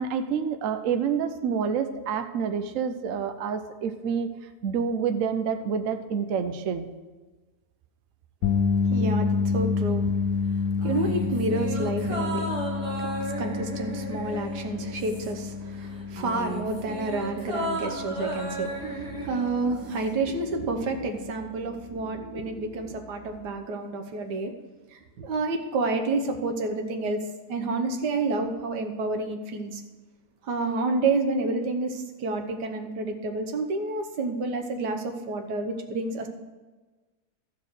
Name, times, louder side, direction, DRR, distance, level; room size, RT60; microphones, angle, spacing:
voice 1, 0.0-4.3 4.6-6.9, right 6 dB, 60° right, 8 dB, 1.0 m, -28 dB
sound 1, 8.4-20.7 21.0-21.3 23.5-23.6, left 5 dB, 75° left, 1.3 m, -29 dB
voice 2, 8.4-24.5 24.9-27.2 27.5-29.8 30.4-36.3, right 3 dB, 85° right, 4 dB, 1.6 m, -30 dB
sound 2, 10.8-15.6 15.8-20.2 20.4-20.5, right 1 dB, 20° right, 1.4 m, -35 dB
14.0 x 4.7 x 6.3 m, 1.3 s
omnidirectional pair, 1.8 m